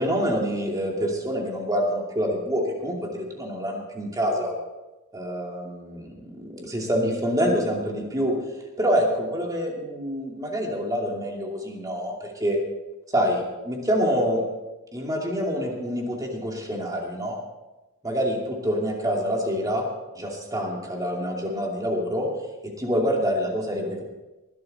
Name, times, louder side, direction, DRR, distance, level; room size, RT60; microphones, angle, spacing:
voice 1, 0.0-4.5 5.1-8.3 8.8-12.6 13.1-14.4 14.9-17.4 18.0-19.8 20.1-22.3 22.8-24.0, equal, 15° right, 0 dB, 2.6 m, -26 dB
19.5 x 12.0 x 4.3 m, 1.1 s
head